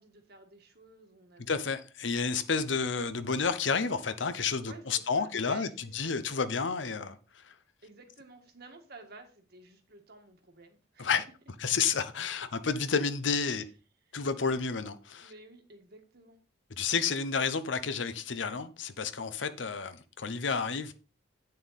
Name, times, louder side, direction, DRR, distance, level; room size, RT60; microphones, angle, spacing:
voice 1, 0.0-1.5 4.6-6.4 7.8-11.1 13.5-13.7 14.0-14.2 15.2-16.4, right 2 dB, 55° right, 1.7 m, -53 dB
voice 2, 1.5-5.7 5.9-7.5 11.0-11.3 11.6-13.7 14.1-15.3 16.8-20.9, left 5 dB, 70° left, 0.8 m, -30 dB
9.2 x 6.7 x 4.2 m
head